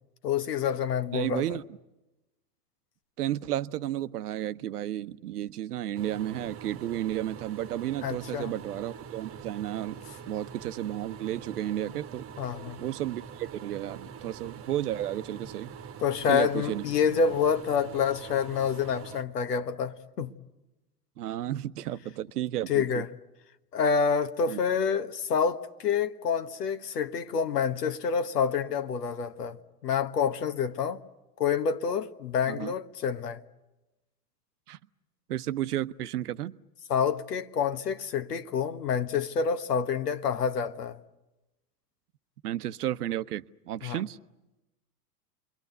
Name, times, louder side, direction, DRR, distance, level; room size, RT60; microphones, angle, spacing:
voice 1, 0.2-1.4 8.0-8.5 12.4-12.8 16.0-20.3 22.7-23.1 23.7-31.0 31.4-33.4 36.9-41.0 43.8-44.0, left 6 dB, 75° left, 1.5 m, -28 dB
voice 2, 1.1-1.6 3.2-10.0 10.3-12.3 12.8-15.7 16.3-16.8 21.2-23.0 24.5-24.6 32.4-32.7 34.7-34.8 35.3-36.6 42.4-44.2, right 13 dB, 70° right, 0.9 m, -32 dB
sound 1, 5.9-19.2, right 7 dB, 25° right, 1.4 m, -44 dB
29.5 x 23.0 x 8.0 m
hypercardioid pair, 90°, 48 cm